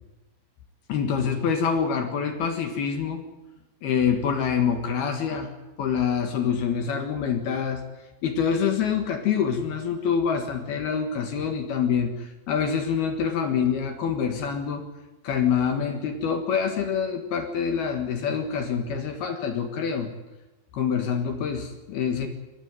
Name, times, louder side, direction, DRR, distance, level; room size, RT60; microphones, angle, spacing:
voice 1, 0.9-3.2 3.8-7.8 8.2-14.9 15.2-20.1 20.7-22.3, left 7 dB, 60° left, 5 dB, 3.0 m, -26 dB
23.0 x 16.5 x 9.3 m, 1.1 s
omnidirectional pair, 6.0 m